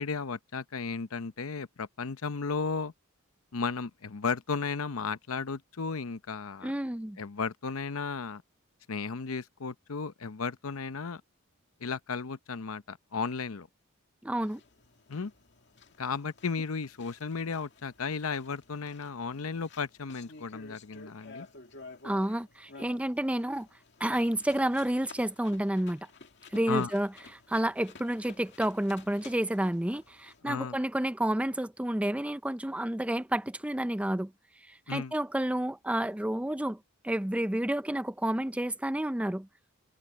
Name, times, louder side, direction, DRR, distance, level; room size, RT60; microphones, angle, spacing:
voice 1, 0.0-2.9 3.5-6.7 7.2-8.4 8.9-11.2 11.8-13.7 15.1-15.3 16.0-21.5 26.7-26.9 30.4-30.8 34.9-35.1, left 5 dB, 90° left, 0.8 m, -34 dB
voice 2, 6.6-7.2 14.2-14.6 22.0-23.7 24.0-26.1 26.5-27.1 27.5-34.3 34.7-36.8 37.0-39.5, right 1 dB, 5° right, 0.5 m, -30 dB
sound 1, 14.3-30.4, left 3 dB, 55° left, 2.2 m, -53 dB
head